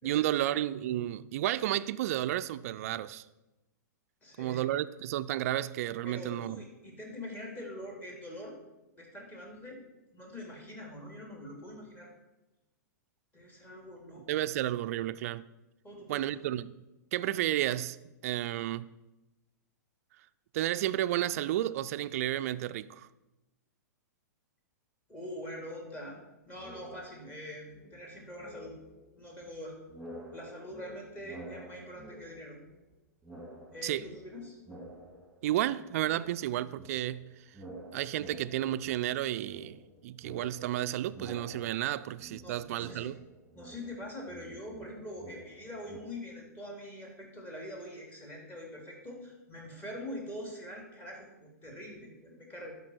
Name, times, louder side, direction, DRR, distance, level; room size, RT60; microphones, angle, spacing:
voice 1, 0.0-3.2 4.4-6.6 14.3-15.4 16.1-16.8 17.1-18.0 18.2-18.9 20.5-23.1 33.8-34.1 35.4-37.3 37.9-43.2, right 13 dB, 55° right, 0.4 m, -32 dB
voice 2, 4.2-4.7 6.0-8.6 9.0-9.8 10.1-12.1 13.3-14.4 15.8-16.3 25.1-26.2 26.5-28.8 29.2-29.8 30.3-32.6 33.7-34.6 42.4-43.1 43.5-52.7, left 1 dB, 20° left, 2.8 m, -44 dB
sound 1, 26.6-27.4 27.7-29.6 29.9-32.9 33.2-35.8 36.0-46.0, right 1 dB, 5° right, 2.1 m, -50 dB
12.5 x 5.3 x 4.4 m
hypercardioid pair, 110°, 10 cm